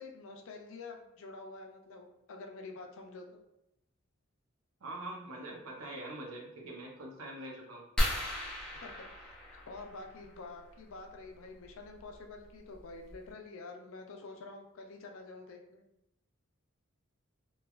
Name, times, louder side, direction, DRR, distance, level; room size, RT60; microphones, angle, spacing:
voice 1, 0.0-3.4 8.6-15.8, left 3 dB, 65° left, 3 dB, 0.4 m, -48 dB
voice 2, 4.8-7.8, right 1 dB, 80° right, 0 dB, 0.7 m, -43 dB
sound 1, 8.0-10.3 12.0-12.1 12.7-12.8 13.1-13.3, equal, 5° left, 0.5 m, -35 dB
3.1 x 2.2 x 2.3 m, 0.85 s
head